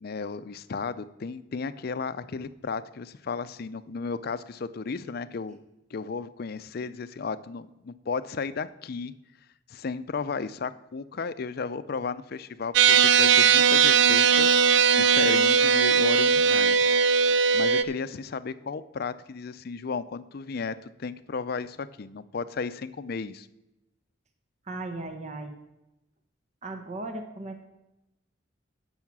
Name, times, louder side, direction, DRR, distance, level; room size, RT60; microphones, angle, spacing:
voice 1, 0.0-5.6 5.9-9.1 9.7-16.9 17.3-23.5, left 4 dB, 55° left, 13 dB, 0.5 m, -34 dB
sound 1, 12.7-17.8, right 6 dB, 70° right, 0.4 m, -19 dB
voice 2, 24.7-25.6 26.6-27.7, right 2 dB, 40° right, 5 dB, 0.9 m, -37 dB
10.5 x 5.7 x 7.2 m, 0.95 s
head